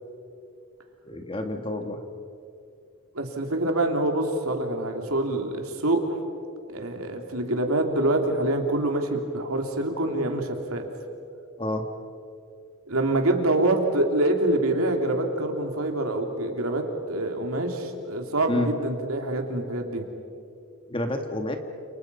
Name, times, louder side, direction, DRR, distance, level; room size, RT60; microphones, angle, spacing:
voice 1, 1.1-2.0 11.6-11.8 18.5-18.7 20.9-21.6, left 1 dB, 25° left, 5 dB, 2.1 m, -29 dB
voice 2, 3.1-6.2 6.7-10.9 12.9-20.1, right 1 dB, 90° right, 3 dB, 3.4 m, -25 dB
29.5 x 29.0 x 5.7 m, 2.5 s
head